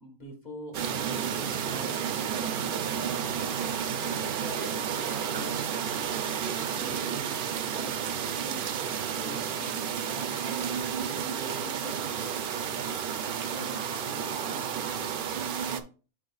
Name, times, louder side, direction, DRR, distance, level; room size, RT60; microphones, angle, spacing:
voice 1, 0.0-2.5 4.0-5.6 6.7-12.1 13.5-15.3, equal, 30° left, 2 dB, 1.6 m, -45 dB
sound 1, 0.7-15.8, right 8 dB, 65° right, 0.5 m, -31 dB
9.5 x 4.4 x 2.3 m, 0.36 s
omnidirectional pair, 1.4 m